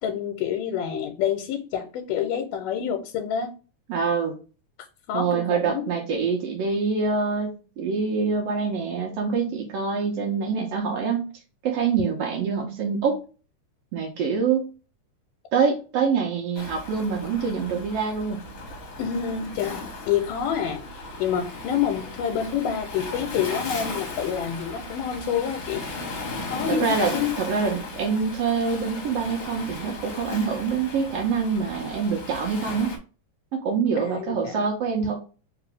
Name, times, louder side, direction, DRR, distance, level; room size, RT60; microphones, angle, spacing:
voice 1, 0.0-3.5 5.1-5.9 19.0-20.8 21.2-25.8 26.4-27.3 34.0-34.6, left 8 dB, 85° left, 4 dB, 2.2 m, -27 dB
voice 2, 3.9-4.3 5.1-7.5 7.8-11.2 11.6-13.2 13.9-14.7 15.5-18.4 26.8-32.9 33.5-35.2, right 5 dB, 70° right, 1 dB, 1.5 m, -25 dB
Waves surf, 16.6-33.0, left 2 dB, 60° left, 1.3 m, -36 dB
4.9 x 2.6 x 3.4 m, 0.34 s
omnidirectional pair, 3.7 m